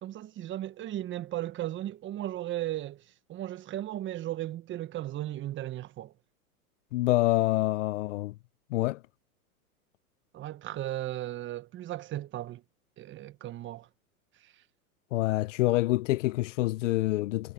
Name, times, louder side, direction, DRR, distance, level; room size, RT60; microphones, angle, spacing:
voice 1, 0.0-6.1 10.3-12.6 13.0-13.9 14.4-14.5, right 14 dB, 25° right, 1.3 m, -36 dB
voice 2, 6.9-8.3 8.7-9.0 15.1-17.5, left 18 dB, 55° left, 0.7 m, -26 dB
hypercardioid pair, 120°, 44 cm